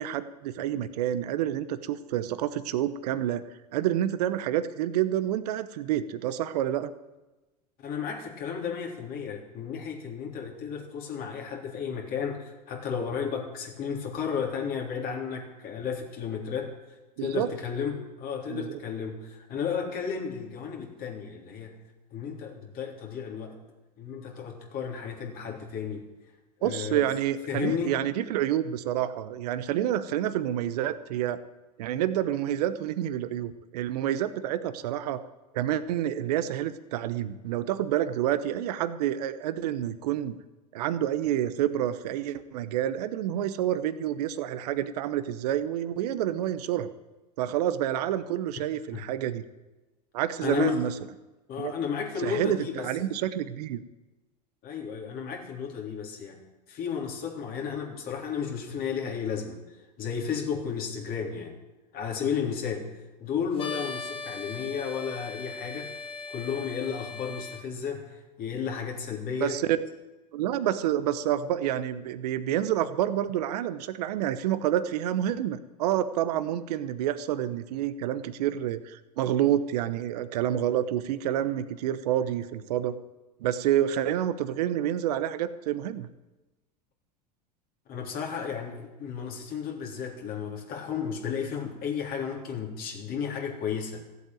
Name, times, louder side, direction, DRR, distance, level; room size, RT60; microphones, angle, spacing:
voice 1, 0.0-3.4 3.7-6.9 17.2-17.5 18.5-18.7 26.6-31.4 31.8-35.2 35.5-40.4 40.7-46.9 47.4-49.4 50.1-50.9 51.6-51.7 52.2-53.8 69.4-69.8 70.3-83.0 83.4-86.1, right 11 dB, 70° right, 13 dB, 1.0 m, -28 dB
voice 2, 7.8-16.7 17.2-21.8 22.1-23.6 24.0-26.1 26.6-27.1 27.5-27.9 48.9-49.0 50.4-50.9 51.5-52.9 54.6-61.6 61.9-62.9 63.2-66.0 66.3-69.6 87.9-94.0, left 7 dB, 45° left, 1 dB, 3.6 m, -33 dB
sound 1, 63.6-67.6, left 4 dB, 25° left, 1.9 m, -39 dB
15.0 x 8.2 x 9.1 m, 1.1 s
hypercardioid pair, 95°, 21 cm